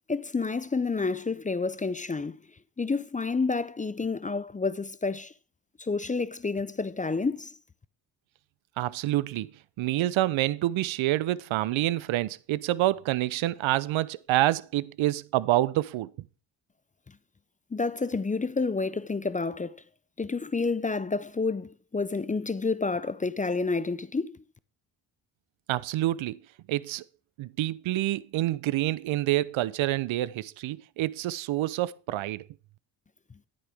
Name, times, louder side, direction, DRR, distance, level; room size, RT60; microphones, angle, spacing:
voice 1, 0.1-2.4 2.8-5.3 5.8-7.5 17.7-19.8 20.2-24.4, left 4 dB, 15° left, 0.5 m, -29 dB
voice 2, 8.8-9.5 9.8-16.1 25.7-26.4 26.7-27.0 27.4-32.5, right 15 dB, 70° right, 0.7 m, -27 dB
11.0 x 9.6 x 3.5 m
supercardioid pair, 60°, 48 cm